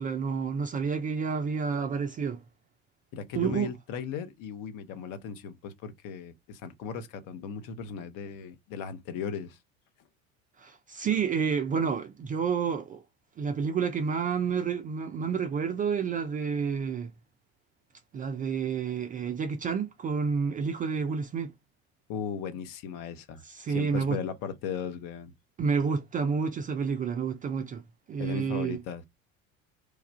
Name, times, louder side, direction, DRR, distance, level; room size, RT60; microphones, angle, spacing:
voice 1, 0.0-2.4 3.4-3.7 10.6-13.0 13.4-17.1 18.1-21.5 23.4-24.2 25.6-27.8 28.1-28.8, right 6 dB, 20° right, 0.4 m, -29 dB
voice 2, 3.1-9.6 22.1-25.3 28.2-29.0, left 6 dB, 50° left, 0.9 m, -37 dB
3.3 x 2.3 x 4.1 m
figure-of-eight pair, 65°, 41 cm